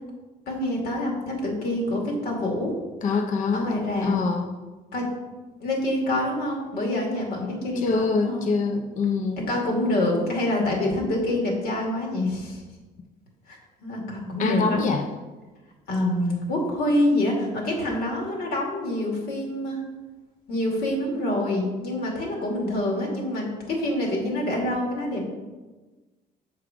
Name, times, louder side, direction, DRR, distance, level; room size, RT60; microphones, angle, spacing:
voice 1, 0.5-2.8 3.5-4.1 4.9-5.0 5.6-8.4 9.5-12.6 13.5-14.9 15.9-19.8 20.5-25.3, left 1 dB, 65° left, -1 dB, 2.4 m, -26 dB
voice 2, 3.0-3.7 4.0-4.5 7.8-9.4 14.4-15.0, left 4 dB, 50° left, 4 dB, 0.7 m, -24 dB
7.4 x 4.8 x 5.0 m, 1.2 s
cardioid pair, 110°, 17 cm